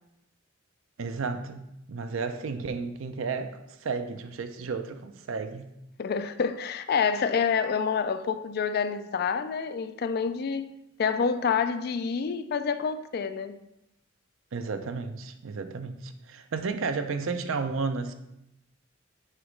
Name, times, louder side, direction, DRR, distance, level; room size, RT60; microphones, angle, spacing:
voice 1, 1.0-5.7 14.5-18.1, right 4 dB, 75° right, 8 dB, 0.5 m, -33 dB
voice 2, 6.0-10.7 11.0-13.6, left 6 dB, 50° left, 11 dB, 0.4 m, -27 dB
6.5 x 3.0 x 5.1 m, 0.86 s
head